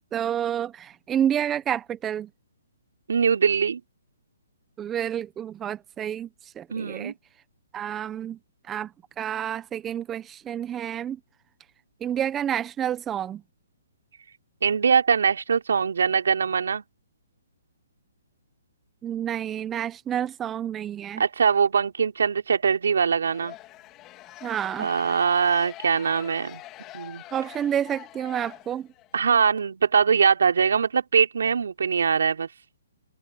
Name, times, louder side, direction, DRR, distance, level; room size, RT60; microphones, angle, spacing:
voice 1, 0.1-2.3 4.8-7.1 7.7-8.4 8.7-8.9 9.2-11.2 12.0-13.4 19.0-21.2 24.4-24.9 27.3-28.9, right 9 dB, 15° right, 1.1 m, -29 dB
voice 2, 3.1-3.8 6.7-7.1 14.6-16.8 21.2-23.6 24.8-26.6 26.9-27.2 29.1-32.5, right 6 dB, 75° right, 3.5 m, -22 dB
sound 1, 23.2-29.2, left 16 dB, 25° left, 3.0 m, -44 dB
hypercardioid pair, 145°, 0 cm